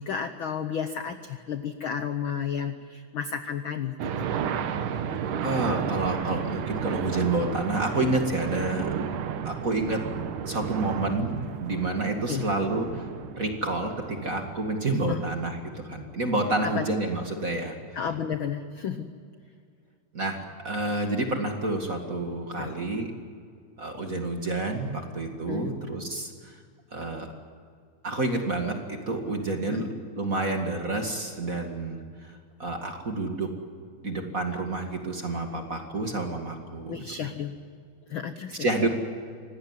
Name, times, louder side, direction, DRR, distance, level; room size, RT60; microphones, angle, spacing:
voice 1, 0.0-4.3 8.8-8.9 12.2-12.5 15.0-15.2 16.8-16.9 17.9-19.1 22.6-22.7 25.5-25.7 29.7-29.9 36.9-37.5 38.1-38.7, left 7 dB, 75° left, 9 dB, 1.1 m, -32 dB
sound 1, 4.0-14.7, right 8 dB, 80° right, 2.8 m, -33 dB
voice 2, 5.4-8.9 9.4-10.0 10.4-13.1 13.4-17.8 20.1-23.1 23.8-26.5 26.9-27.3 28.0-29.9 30.1-33.5 34.0-37.3 38.5-38.9, right 2 dB, 30° right, 3 dB, 2.0 m, -29 dB
25.0 x 18.5 x 9.6 m, 2.2 s
omnidirectional pair, 3.6 m